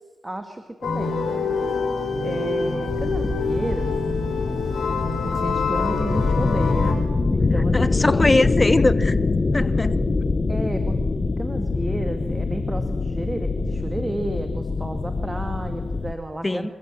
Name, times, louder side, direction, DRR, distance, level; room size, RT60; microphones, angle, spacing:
voice 1, 0.2-1.5 2.2-3.9 5.2-7.0 7.3-8.5 10.5-11.0 11.4-16.7, right 1 dB, 20° right, 2.2 m, -31 dB
sound 1, 0.8-6.9, left 4 dB, 80° left, 6.4 m, -26 dB
sound 2, 2.9-16.1, left 3 dB, 45° left, 1.5 m, -24 dB
voice 2, 7.7-9.2 9.5-10.0 16.4-16.7, left 2 dB, 30° left, 1.2 m, -21 dB
26.5 x 15.0 x 7.7 m
cardioid pair, 50°, 0 cm